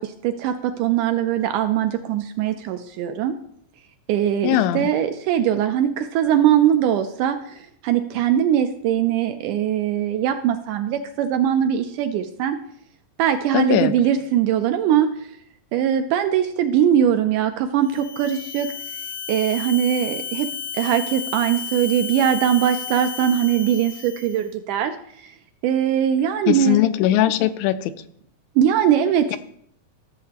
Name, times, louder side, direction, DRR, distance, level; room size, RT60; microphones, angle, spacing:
voice 1, 0.0-3.3 4.1-12.6 13.2-15.1 15.7-18.7 19.3-20.5 20.7-24.9 25.6-26.8 28.6-29.4, right 10 dB, 80° right, 7 dB, 1.9 m, -21 dB
voice 2, 4.4-4.9 13.5-13.9 26.5-27.9 29.3-29.4, left 13 dB, 85° left, 12 dB, 2.3 m, -20 dB
sound 1, 17.8-24.4, left 7 dB, 55° left, 1.0 m, -33 dB
14.0 x 7.2 x 2.9 m, 0.68 s
omnidirectional pair, 4.0 m